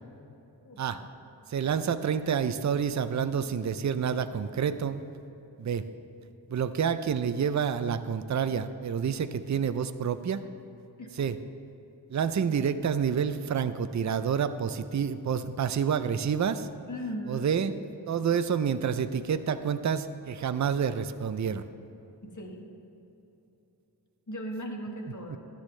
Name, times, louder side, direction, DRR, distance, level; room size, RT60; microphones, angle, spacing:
voice 1, 0.6-1.0 11.0-11.1 16.9-17.5 22.2-22.7 24.3-25.4, equal, 45° left, 1 dB, 1.5 m, -37 dB
voice 2, 1.5-5.0 5.6-5.9 6.5-10.4 11.2-11.4 12.1-16.7 17.3-17.7 18.1-21.6, right 7 dB, 45° right, 11 dB, 0.5 m, -28 dB
13.5 x 10.0 x 3.2 m, 3.0 s
wide cardioid pair, 55°, 43 cm